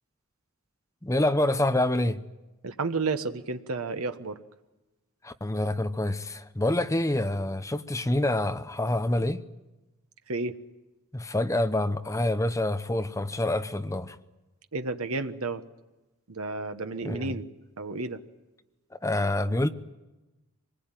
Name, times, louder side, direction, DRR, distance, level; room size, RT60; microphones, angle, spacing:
voice 1, 1.0-2.2 5.2-9.4 11.1-14.2 17.0-17.4 19.0-19.7, left 1 dB, 15° left, 0.9 m, -27 dB
voice 2, 2.6-4.4 10.3-10.6 14.7-15.6 16.3-17.4 17.8-18.2, right 3 dB, 75° right, 1.3 m, -31 dB
25.0 x 20.0 x 9.1 m
head